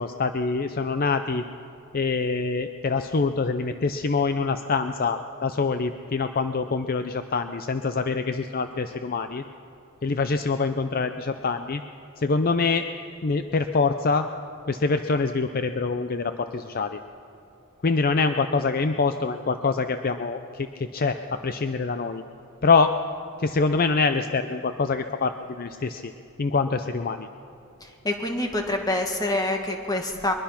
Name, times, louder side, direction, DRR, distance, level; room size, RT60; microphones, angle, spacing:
voice 1, 0.0-1.4 1.9-9.4 10.0-11.8 12.2-12.9 13.2-14.3 14.7-17.0 17.8-22.2 22.6-22.9 23.4-26.1 26.4-27.3, left 4 dB, 45° left, 8 dB, 0.6 m, -25 dB
voice 2, 27.8-30.3, left 1 dB, 20° left, 3 dB, 1.9 m, -26 dB
22.5 x 22.0 x 5.9 m, 2.7 s
head